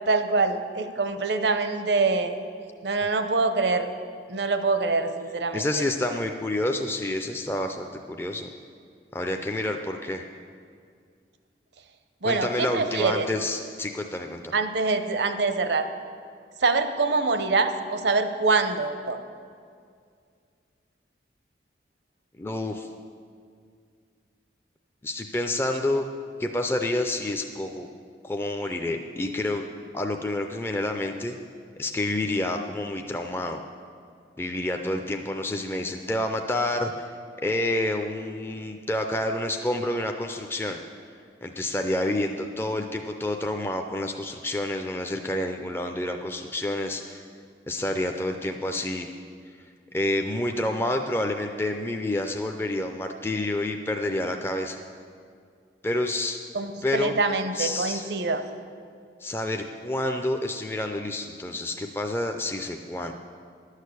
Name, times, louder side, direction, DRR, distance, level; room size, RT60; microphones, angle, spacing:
voice 1, 0.1-2.4 2.8-3.9 4.3-5.8 12.2-13.3 14.5-15.9 16.6-19.2 56.5-58.4, right 3 dB, 75° right, 9 dB, 0.7 m, -25 dB
voice 2, 5.5-8.5 9.1-10.2 12.2-14.5 22.4-22.9 25.0-26.0 26.4-27.9 28.2-29.7 29.9-31.4 31.8-33.6 34.4-37.1 37.4-40.8 41.4-47.2 47.7-49.1 49.9-54.8 55.8-56.4 56.8-57.1 57.5-58.1 59.2-63.1, left 1 dB, 15° left, 4 dB, 0.4 m, -28 dB
11.0 x 6.5 x 8.2 m, 2.2 s
head